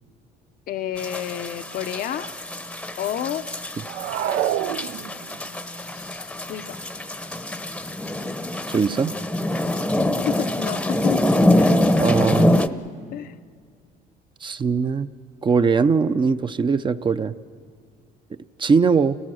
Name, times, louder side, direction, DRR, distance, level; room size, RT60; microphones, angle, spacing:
voice 1, 0.7-2.3 3.0-3.4 5.9-6.8 10.3-11.3 11.6-11.8 13.1-13.4, left 10 dB, 60° left, 10 dB, 0.6 m, -30 dB
sound 1, 1.0-12.7, left 1 dB, 5° left, 0.7 m, -24 dB
sound 2, 3.8-5.5, right 11 dB, 80° right, 0.5 m, -26 dB
voice 2, 8.7-9.1 12.0-12.5 14.4-15.1 15.4-17.3 18.6-19.2, right 5 dB, 30° right, 11 dB, 0.5 m, -20 dB
28.5 x 18.0 x 6.3 m, 2.1 s
cardioid pair, 110°, 17 cm